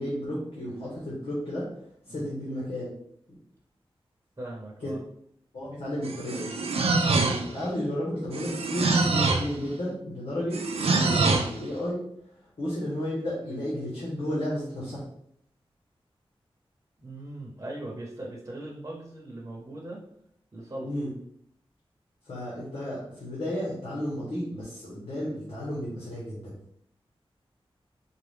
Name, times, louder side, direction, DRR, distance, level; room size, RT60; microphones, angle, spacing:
voice 1, 0.0-1.7 2.0-2.9 4.8-4.9 5.5-6.8 7.1-12.0 12.6-15.1 20.8-21.1 22.2-26.6, equal, 80° left, -7 dB, 1.3 m, -33 dB
voice 2, 4.4-5.0 17.0-20.0 20.5-20.9, right 1 dB, 35° right, -3 dB, 1.0 m, -39 dB
sound 1, 6.0-7.6 8.3-9.6 10.5-11.6, right 3 dB, 85° right, 0.4 m, -25 dB
4.7 x 2.4 x 3.5 m, 0.71 s
wide cardioid pair, 85°, 10 cm